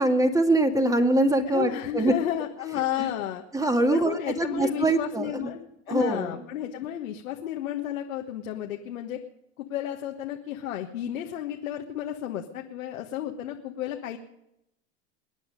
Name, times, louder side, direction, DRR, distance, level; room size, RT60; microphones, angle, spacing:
voice 1, 0.0-2.1 3.0-3.1 3.5-5.5 5.9-6.3, right 2 dB, 10° right, 6 dB, 2.0 m, -23 dB
voice 2, 1.5-3.4 3.9-9.2 9.6-14.2, left 11 dB, 85° left, 2 dB, 1.4 m, -32 dB
22.5 x 9.7 x 5.2 m, 0.82 s
hypercardioid pair, 95°, 39 cm